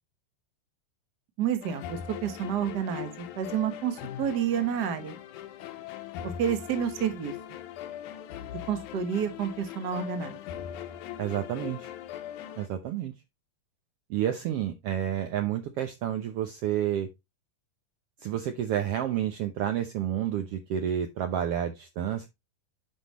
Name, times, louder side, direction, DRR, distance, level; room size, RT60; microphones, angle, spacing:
voice 1, 1.4-5.2 6.2-7.3 8.7-10.4, right 8 dB, 65° right, 1.0 m, -29 dB
sound 1, 1.6-12.7, left 10 dB, 75° left, 2.1 m, -40 dB
voice 2, 11.2-11.9 12.6-13.1 14.1-17.1 18.2-22.3, right 10 dB, 85° right, 1.3 m, -30 dB
9.9 x 5.5 x 3.0 m
omnidirectional pair, 3.8 m